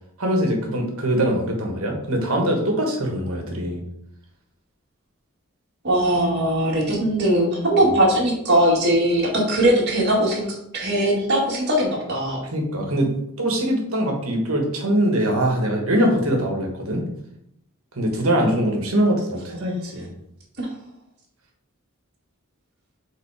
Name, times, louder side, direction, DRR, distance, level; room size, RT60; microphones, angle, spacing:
voice 1, 0.2-3.8 12.5-13.1 13.4-17.0 17.9-20.1, right 1 dB, 85° right, 1 dB, 1.5 m, -22 dB
voice 2, 5.8-12.4 20.6-20.7, right 1 dB, 55° right, -3 dB, 2.1 m, -20 dB
5.1 x 3.9 x 4.9 m, 0.77 s
head